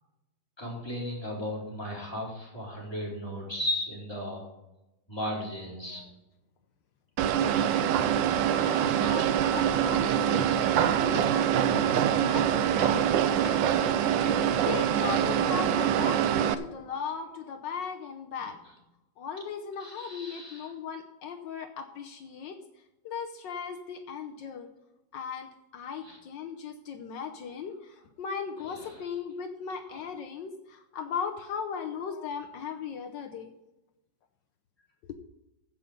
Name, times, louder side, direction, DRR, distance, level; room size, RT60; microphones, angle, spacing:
voice 1, 0.6-4.5 5.1-6.0 19.8-20.7 26.0-26.2 28.6-29.0 29.8-30.0, left 1 dB, 15° left, -5 dB, 4.4 m, -36 dB
sound 1, 7.2-16.5, right 9 dB, 80° right, 1.4 m, -25 dB
voice 2, 8.4-13.1 14.5-18.6 19.2-22.6 23.0-24.7 25.1-33.5, left 6 dB, 75° left, 5 dB, 1.5 m, -38 dB
16.0 x 5.8 x 5.2 m, 0.98 s
omnidirectional pair, 2.0 m